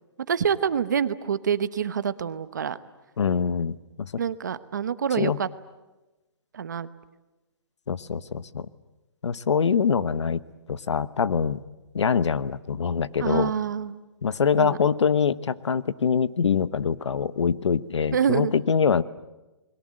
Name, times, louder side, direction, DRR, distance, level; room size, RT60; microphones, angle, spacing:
voice 1, 0.3-2.8 4.2-5.5 6.5-6.9 13.2-14.0 14.6-14.8 18.1-18.5, right 7 dB, 40° right, 14 dB, 1.0 m, -26 dB
voice 2, 3.2-4.1 5.2-5.4 7.9-8.7 9.2-10.4 10.7-11.6 11.9-13.5 14.2-19.0, left 6 dB, 85° left, 16 dB, 1.1 m, -24 dB
30.0 x 22.0 x 7.7 m, 1.1 s
hypercardioid pair, 180°, 14 cm